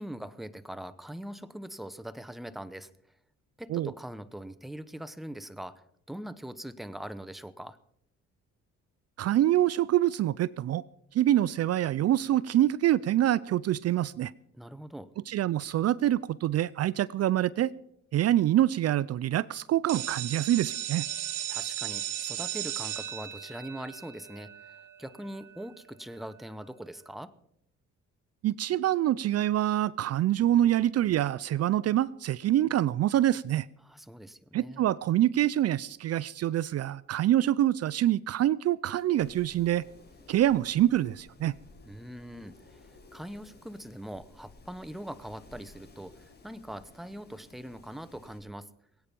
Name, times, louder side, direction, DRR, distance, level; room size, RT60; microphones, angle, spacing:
voice 1, 0.0-2.9 3.6-7.8 14.5-15.1 21.5-27.3 33.8-34.9 41.8-48.7, right 1 dB, ahead, 13 dB, 0.8 m, -42 dB
voice 2, 9.2-10.8 11.1-14.3 15.3-17.7 18.1-21.1 28.4-33.7 34.5-39.8 40.3-41.5, right 13 dB, 55° right, 20 dB, 0.4 m, -25 dB
sound 1, 19.9-25.5, right 12 dB, 80° right, 1.7 m, -36 dB
Wind, 39.2-48.4, left 3 dB, 35° left, 4.5 m, -55 dB
22.0 x 8.8 x 5.3 m, 0.74 s
cardioid pair, 90°, 30 cm